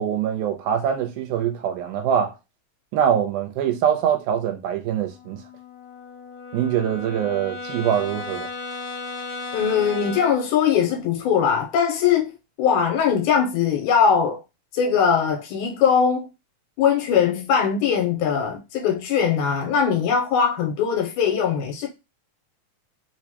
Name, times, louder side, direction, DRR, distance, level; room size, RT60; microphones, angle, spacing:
voice 1, 0.0-2.3 2.9-5.4 6.5-8.5, right 9 dB, 85° right, 2.1 m, -23 dB
Brass instrument, 5.0-10.5, left 3 dB, 70° left, 2.1 m, -35 dB
voice 2, 9.5-12.3 12.6-14.4 14.7-16.3 16.8-21.9, left 7 dB, 90° left, 2.0 m, -21 dB
4.7 x 2.1 x 2.8 m
omnidirectional pair, 3.4 m